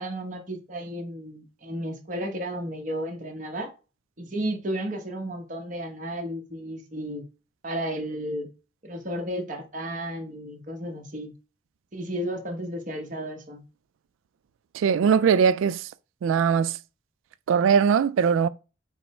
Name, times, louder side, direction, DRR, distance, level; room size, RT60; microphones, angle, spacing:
voice 1, 0.0-3.7 4.2-7.2 7.6-8.5 8.8-11.3 11.9-13.6, right 1 dB, 40° right, 1.0 m, -33 dB
voice 2, 14.7-15.8 16.2-16.8 17.5-18.5, right 7 dB, 80° right, 0.3 m, -20 dB
5.5 x 2.0 x 4.2 m
head